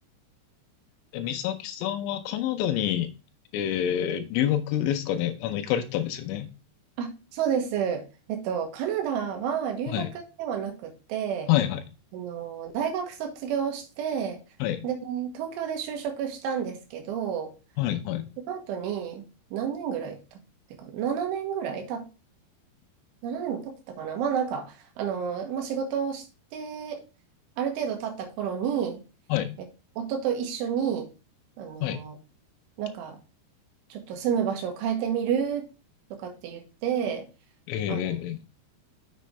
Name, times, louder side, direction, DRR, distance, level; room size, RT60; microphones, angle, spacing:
voice 1, 1.1-3.1 3.5-6.5 9.9-10.1 11.5-11.8 14.6-14.8 17.8-18.3 29.3-29.6 31.8-32.0 37.7-38.4, left 11 dB, 85° left, 7 dB, 3.2 m, -27 dB
voice 2, 7.0-11.5 12.1-14.4 14.8-17.5 18.5-19.3 19.5-20.4 20.8-22.0 23.2-26.2 26.5-27.0 27.6-29.0 30.0-31.1 31.6-32.1 32.8-33.2 33.9-35.6 36.1-37.3 37.9-38.1, right 8 dB, 85° right, 3 dB, 3.7 m, -30 dB
7.6 x 6.4 x 3.2 m, 0.30 s
omnidirectional pair, 5.4 m